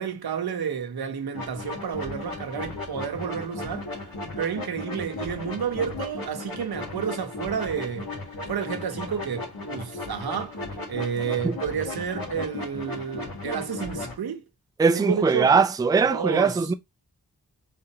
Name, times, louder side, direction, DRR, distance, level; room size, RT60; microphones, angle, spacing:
voice 1, 0.0-4.1 4.4-8.1 8.5-10.6 10.9-14.5 14.9-15.5 16.1-16.6, right 7 dB, 85° right, 0.8 m, -30 dB
sound 1, 1.3-14.1, left 2 dB, 70° left, 1.9 m, -36 dB
voice 2, 14.8-16.7, right 5 dB, 10° right, 0.4 m, -21 dB
4.2 x 3.7 x 2.8 m
cardioid pair, 55°, 36 cm